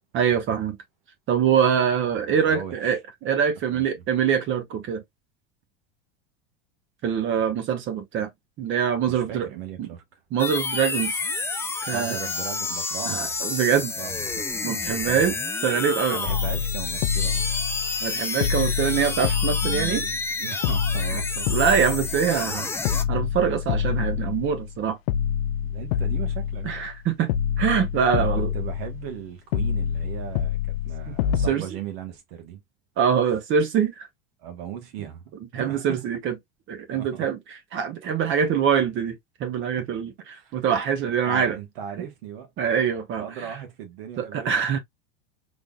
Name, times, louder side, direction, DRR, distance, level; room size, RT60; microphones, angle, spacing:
voice 1, 0.1-0.8 1.3-5.0 7.0-8.3 8.6-9.5 9.8-9.9 10.3-11.2 11.9-12.1 13.1-13.9 14.6-15.3 15.6-16.2 18.0-20.0 21.5-22.7 23.1-25.0 26.6-27.3 27.6-28.5 31.1-31.2 31.5-31.6 33.0-34.1 35.5-36.3 36.7-37.4 37.7-41.6 42.6-43.2 44.2-44.8, right 7 dB, 40° right, 0.8 m, -24 dB
voice 2, 2.4-3.0 3.7-4.0 9.1-10.2 11.9-13.4 14.0-14.4 14.8-15.3 16.1-17.5 19.6-21.5 25.6-26.8 28.1-28.3 28.5-30.6 30.8-32.6 34.4-35.2 35.5-36.0 36.9-37.3 39.8-39.9 40.3-40.6 41.1-42.5 43.2-44.7, right 9 dB, 70° right, 1.3 m, -37 dB
sound 1, 10.4-23.0, left 3 dB, 10° left, 0.5 m, -30 dB
sound 2, 16.3-18.1 18.4-20.3 20.6-22.5 22.8-24.8 25.1-27.0 27.3-29.2 29.5-31.5, left 9 dB, 75° left, 0.6 m, -27 dB
3.8 x 3.3 x 2.3 m
supercardioid pair, 110°, 30 cm